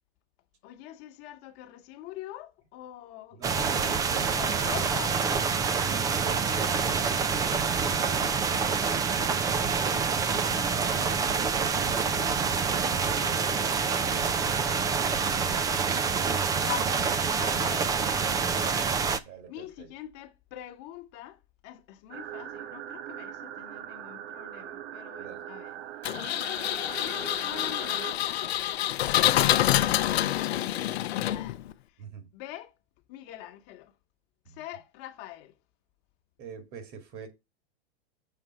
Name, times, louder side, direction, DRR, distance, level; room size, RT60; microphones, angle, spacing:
voice 1, 0.6-5.5 9.6-12.1 16.2-25.8 26.6-28.5 29.3-30.9 31.2-31.6 31.9-32.0 32.3-32.7 33.1-33.9 34.4-35.6, left 13 dB, 45° left, 1.2 m, -44 dB
voice 2, 3.3-4.6 5.7-9.0 19.2-19.9 25.1-25.5 32.0-32.3 34.5-34.6 36.4-37.3, right 5 dB, 45° right, 2.2 m, -46 dB
sound 1, 3.4-19.2, right 5 dB, 10° right, 0.3 m, -27 dB
sound 2, 22.1-28.1, right 11 dB, 75° right, 0.8 m, -41 dB
Engine, 26.0-31.7, left 13 dB, 75° left, 0.8 m, -27 dB
6.8 x 3.7 x 5.9 m
hypercardioid pair, 115°, 32 cm